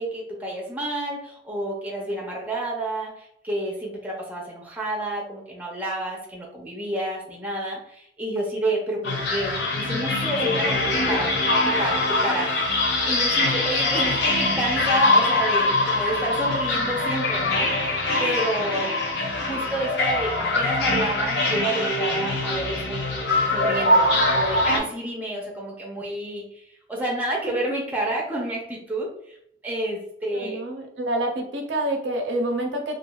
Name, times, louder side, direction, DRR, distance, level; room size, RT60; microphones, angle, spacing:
voice 1, 0.0-11.3 11.6-12.5 13.0-19.0 19.4-23.2 23.5-26.6 26.9-29.1 29.6-30.6, right 1 dB, 10° right, -2 dB, 0.5 m, -29 dB
sound 1, 9.0-24.8, left 2 dB, 65° left, 0.6 m, -23 dB
voice 2, 30.3-33.0, right 1 dB, 80° right, 3 dB, 0.6 m, -27 dB
3.1 x 2.3 x 2.3 m, 0.72 s
head